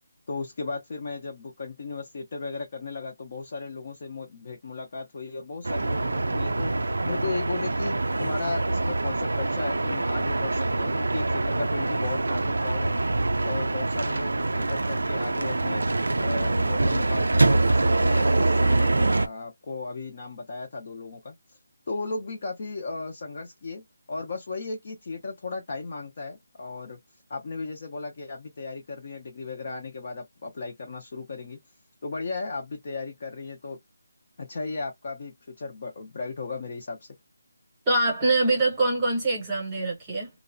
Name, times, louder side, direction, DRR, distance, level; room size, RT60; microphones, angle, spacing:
voice 1, 0.3-6.7 7.0-13.0 13.4-15.9 16.2-21.4 21.9-27.0 27.3-31.6 32.0-33.8 34.4-37.1, left 3 dB, 25° left, 0.4 m, -36 dB
sound 1, 5.6-19.3, right 2 dB, 75° right, 0.4 m, -24 dB
voice 2, 37.9-40.3, right 2 dB, 10° right, 0.8 m, -24 dB
2.7 x 2.0 x 2.5 m
figure-of-eight pair, 180°, 0 cm